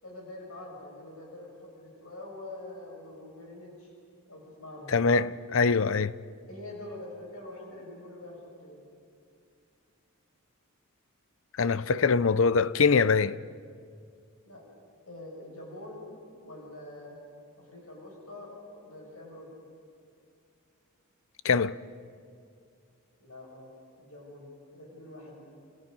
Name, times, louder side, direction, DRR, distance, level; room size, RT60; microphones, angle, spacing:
voice 1, 0.0-3.9 4.3-4.9 6.5-8.8 14.4-14.6 15.1-17.2 17.6-19.5 23.2-25.4, left 1 dB, 80° left, 6.8 m, -45 dB
voice 2, 4.9-6.2 11.6-13.4 21.4-21.8, left 4 dB, 60° left, 0.6 m, -23 dB
29.5 x 29.0 x 5.4 m
head